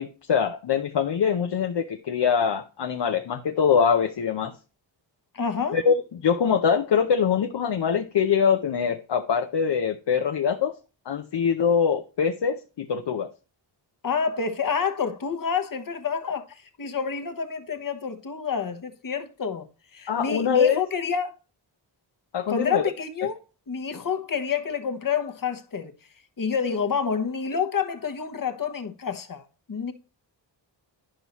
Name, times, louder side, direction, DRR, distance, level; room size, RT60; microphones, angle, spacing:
voice 1, 0.0-4.5 5.7-10.7 11.1-13.3 20.1-20.8 22.3-22.8, left 7 dB, 60° left, 0.8 m, -23 dB
voice 2, 5.3-5.8 14.0-19.7 19.9-21.3 22.5-23.4 23.7-25.9 26.4-29.4 29.7-29.9, left 6 dB, 45° left, 1.2 m, -28 dB
10.0 x 5.5 x 3.0 m
cardioid pair, 65°, 46 cm